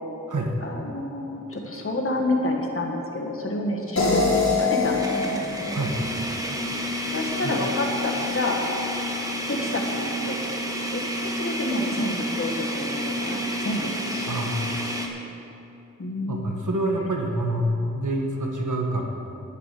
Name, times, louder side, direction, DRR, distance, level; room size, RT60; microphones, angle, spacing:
voice 1, 0.6-4.2 4.6-5.4 7.1-8.6 9.5-10.4 10.9-14.3 16.0-16.6, left 2 dB, 45° left, 0 dB, 1.6 m, -29 dB
sound 1, 1.5-1.7 2.2-2.3 4.2-15.1, equal, 10° right, 1.4 m, -30 dB
sound 2, 4.0-7.0, left 4 dB, 65° left, 3.4 m, -25 dB
voice 2, 14.3-14.7 16.3-19.0, right 1 dB, 80° right, 1 dB, 1.4 m, -26 dB
10.0 x 9.9 x 6.6 m, 2.9 s
wide cardioid pair, 60°, 30 cm